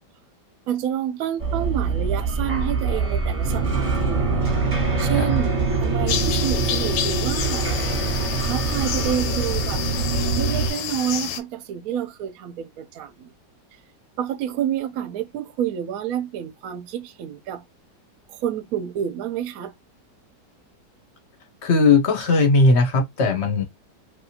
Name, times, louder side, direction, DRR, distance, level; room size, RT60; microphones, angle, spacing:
voice 1, 0.7-4.6 5.0-7.7 8.4-9.8 10.4-13.3 14.2-17.6 18.3-19.7, right 10 dB, 65° right, 0.9 m, -29 dB
Birds Scrapes Water, 1.4-10.7, right 4 dB, 25° right, 0.9 m, -24 dB
sound 1, 6.1-11.4, left 9 dB, 85° left, 1.3 m, -29 dB
voice 2, 21.6-23.6, left 3 dB, 50° left, 0.8 m, -18 dB
3.3 x 2.6 x 2.8 m
omnidirectional pair, 1.9 m